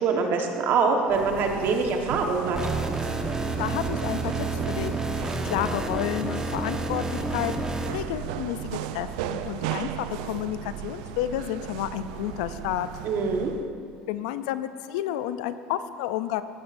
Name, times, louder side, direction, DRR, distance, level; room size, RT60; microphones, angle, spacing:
voice 1, 0.0-2.6 13.0-13.5, right 4 dB, 60° right, 3 dB, 1.3 m, -24 dB
sound 1, 1.1-13.7, right 10 dB, 80° right, 0.4 m, -36 dB
sound 2, 2.6-7.9, right 2 dB, 15° right, 1.0 m, -29 dB
voice 2, 3.6-7.5 7.9-12.9 14.1-16.4, left 12 dB, 80° left, 13 dB, 0.4 m, -31 dB
16.5 x 8.7 x 2.6 m, 2.3 s
supercardioid pair, 85°, 4 cm